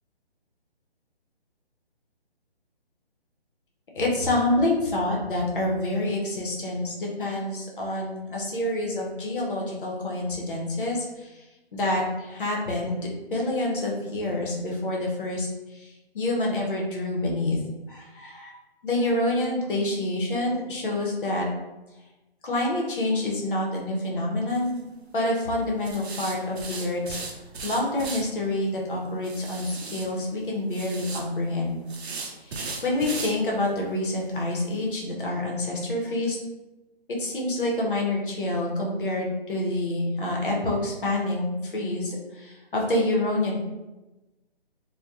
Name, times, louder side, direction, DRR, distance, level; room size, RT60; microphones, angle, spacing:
voice 1, 4.0-11.4 11.7-13.0 13.3-17.6 17.9-18.5 18.8-21.5 22.4-24.8 25.1-27.2 27.6-31.8 32.4-32.6 32.8-36.4 37.1-43.6, left 1 dB, 55° left, -2 dB, 0.7 m, -27 dB
sound 1, 24.5-24.8 25.8-28.2 29.2-30.1 30.7-31.2 31.9-33.3 33.7-33.8 34.2-34.3 34.7-34.8, right 4 dB, 80° right, 0.6 m, -36 dB
2.7 x 2.1 x 2.3 m, 1.1 s
hypercardioid pair, 165°, 31 cm